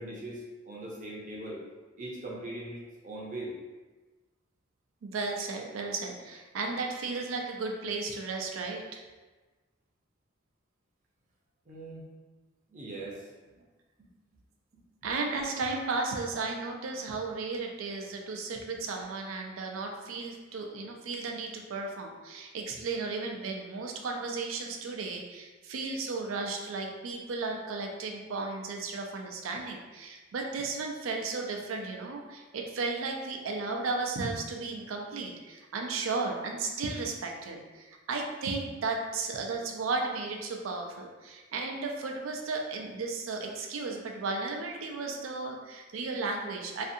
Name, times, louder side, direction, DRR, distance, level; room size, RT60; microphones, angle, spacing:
voice 1, 0.0-1.6 2.0-3.5 11.7-12.1 12.7-13.3, right 1 dB, 40° right, -4 dB, 0.6 m, -40 dB
voice 2, 5.0-9.0 15.0-46.8, right 3 dB, 90° right, 2 dB, 0.4 m, -34 dB
2.6 x 2.4 x 2.6 m, 1.3 s
head